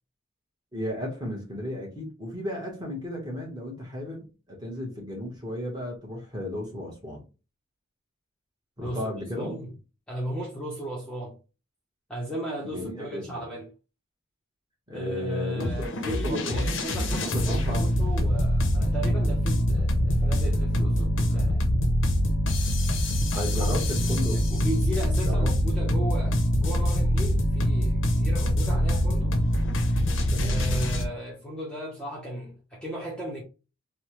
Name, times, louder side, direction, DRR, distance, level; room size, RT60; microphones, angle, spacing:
voice 1, 0.7-7.2 8.8-9.5 12.6-13.4 14.9-15.7 16.0-16.8 17.1-17.9 23.3-24.4 25.3-25.5 30.3-30.7, left 1 dB, 20° right, 1.0 m, -34 dB
voice 2, 8.8-9.7 10.1-11.4 12.1-13.7 14.9-21.8 23.3-29.4 30.4-33.4, right 1 dB, 5° left, 0.6 m, -36 dB
sound 1, 15.6-31.1, equal, 60° left, 0.6 m, -24 dB
3.2 x 2.1 x 2.9 m
head